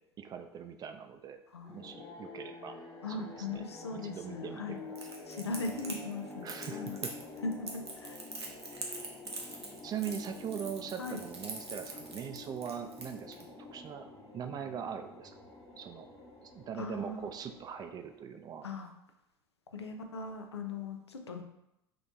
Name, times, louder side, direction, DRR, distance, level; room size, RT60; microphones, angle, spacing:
voice 1, 0.2-1.4 1.7-2.8 3.2-3.6 3.9-5.1 6.4-7.1 8.8-8.9 9.8-13.4 13.7-14.1 14.3-15.3 15.8-16.1 16.4-18.7, right 8 dB, 30° right, 7 dB, 0.4 m, -41 dB
voice 2, 1.5-1.9 3.0-4.8 5.3-7.0 7.4-8.2 11.0-11.2 16.8-17.3 18.6-18.9 19.7-21.4, left 3 dB, 85° left, 5 dB, 0.4 m, -39 dB
sound 1, 1.6-18.2, left 3 dB, 30° left, 1.2 m, -48 dB
Crackle, 4.9-13.4, right 3 dB, 90° right, 0.6 m, -43 dB
4.0 x 2.9 x 3.3 m, 0.86 s
figure-of-eight pair, 75°, 13 cm